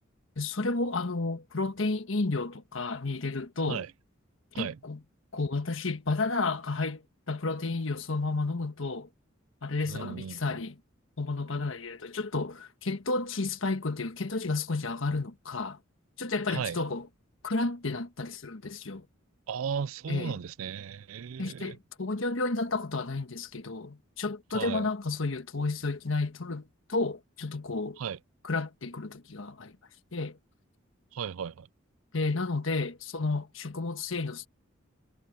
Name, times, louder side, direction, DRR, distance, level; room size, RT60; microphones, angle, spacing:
voice 1, 0.4-3.8 4.6-5.0 5.3-7.0 7.3-9.1 9.6-10.8 11.2-15.8 16.2-17.1 17.4-19.0 20.1-20.4 21.4-28.0 28.4-29.7 30.1-30.4 32.1-34.5, left 3 dB, 70° left, 1.4 m, -31 dB
voice 2, 9.9-10.6 16.5-16.8 19.5-21.8 24.5-24.9 28.0-28.2 31.1-31.7, right 7 dB, 85° right, 0.4 m, -35 dB
head